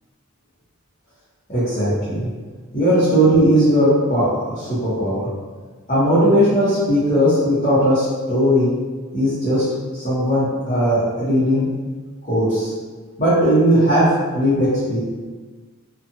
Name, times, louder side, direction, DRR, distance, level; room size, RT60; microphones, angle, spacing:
voice 1, 1.5-2.3 2.7-5.3 5.9-8.7 9.1-9.6 9.9-11.7 12.2-12.7 13.2-14.1 14.3-15.0, equal, 30° left, -15 dB, 0.9 m, -18 dB
2.7 x 2.4 x 2.6 m, 1.4 s
head